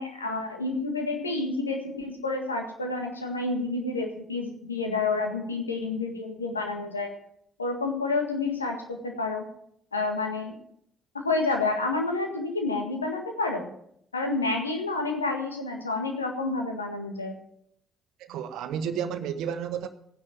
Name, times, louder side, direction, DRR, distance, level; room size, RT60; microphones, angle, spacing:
voice 1, 0.0-7.1 7.6-8.8 9.0-9.4 9.9-10.6 11.1-13.7 14.1-17.4, left 3 dB, 90° left, 1.7 m, -29 dB
voice 2, 18.2-19.9, right 8 dB, 65° right, 1.0 m, -31 dB
15.5 x 9.8 x 7.5 m
figure-of-eight pair, 45°, 0 cm